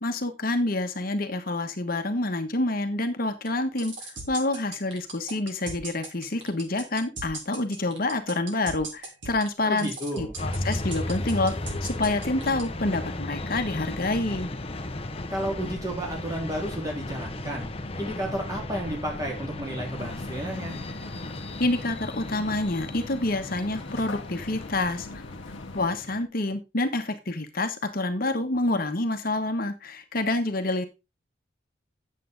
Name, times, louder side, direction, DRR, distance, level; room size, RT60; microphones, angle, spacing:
voice 1, 0.0-11.5 11.8-14.5 21.6-25.1 25.7-30.8, left 2 dB, 50° left, 7 dB, 1.2 m, -28 dB
sound 1, 3.5-12.6, right 3 dB, 80° right, 3.4 m, -37 dB
voice 2, 9.7-10.4 15.3-17.7 18.0-20.8, right 1 dB, 20° right, -1 dB, 3.5 m, -32 dB
sound 2, 10.4-26.2, left 1 dB, 30° left, 0.9 m, -35 dB
sound 3, 20.0-25.9, left 3 dB, 90° left, 0.9 m, -42 dB
9.3 x 7.6 x 3.8 m, 0.25 s
head